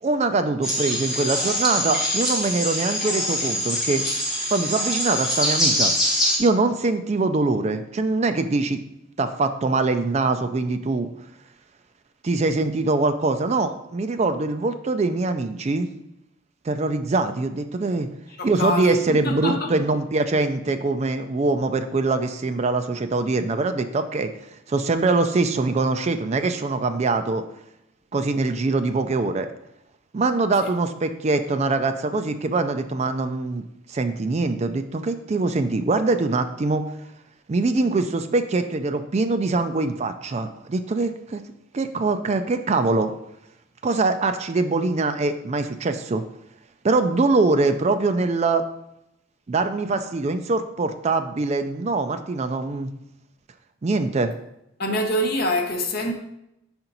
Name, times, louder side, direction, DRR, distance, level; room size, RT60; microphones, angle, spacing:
voice 1, 0.0-4.1 4.5-5.9 6.4-8.8 9.2-11.1 12.2-15.9 16.6-18.1 18.4-24.3 24.7-27.4 28.1-29.5 30.1-33.6 33.9-36.8 37.5-41.4 41.7-43.1 43.8-46.2 46.8-48.6 49.5-52.9 53.8-54.3, right 3 dB, 30° right, 0.3 m, -23 dB
sound 1, 0.6-6.4, equal, ahead, 1.1 m, -24 dB
voice 2, 18.4-19.7 30.6-30.7 54.8-56.1, left 1 dB, 45° left, 0.8 m, -25 dB
5.6 x 4.3 x 3.9 m
head